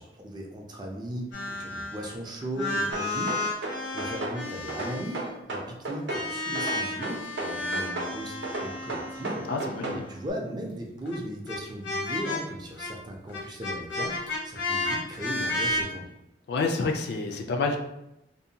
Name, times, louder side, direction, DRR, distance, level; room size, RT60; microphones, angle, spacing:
voice 1, 0.0-3.4 3.7-8.4 8.6-9.5 10.1-16.1, equal, 25° right, 0 dB, 0.4 m, -37 dB
sound 1, 1.3-2.1 2.4-5.3 6.1-10.3 11.1-11.2 11.5-11.6 11.8-12.4 12.8-12.9 13.3-15.8, left 2 dB, 80° left, 0.7 m, -32 dB
sound 2, 2.9-4.4 4.7-6.2 6.5-8.1 8.4-10.0, right 2 dB, 70° right, 0.6 m, -33 dB
voice 2, 9.5-10.0 16.5-17.8, left 3 dB, 65° left, 3 dB, 0.3 m, -28 dB
2.6 x 2.1 x 2.7 m, 0.85 s
head